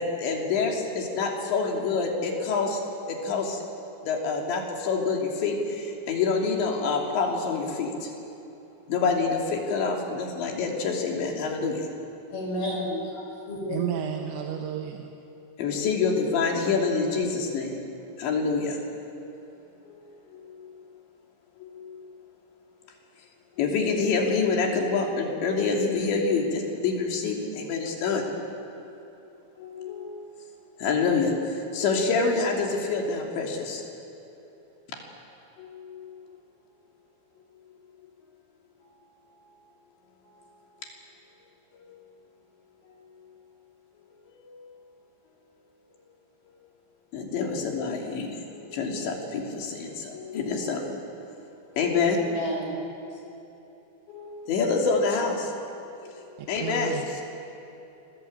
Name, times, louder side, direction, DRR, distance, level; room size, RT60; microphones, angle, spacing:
voice 1, 0.0-2.8 3.1-3.6 4.0-8.3 8.9-11.9 15.6-17.8 18.2-19.4 19.9-20.0 20.3-20.8 21.6-22.0 23.6-28.3 29.6-30.4 30.8-33.8 35.6-36.3 40.3-40.4 40.8-40.9 41.7-42.0 42.9-43.1 44.3-44.7 47.1-51.2 51.8-52.2 54.1-55.6 56.0-57.2, left 4 dB, 75° left, 1 dB, 5.2 m, -27 dB
voice 2, 12.3-13.8 52.2-52.8, left 1 dB, 55° left, 0 dB, 7.6 m, -31 dB
voice 3, 13.7-15.1 56.4-57.2, right 9 dB, 85° right, 3 dB, 3.6 m, -32 dB
27.5 x 22.0 x 8.7 m, 3.0 s
omnidirectional pair, 5.2 m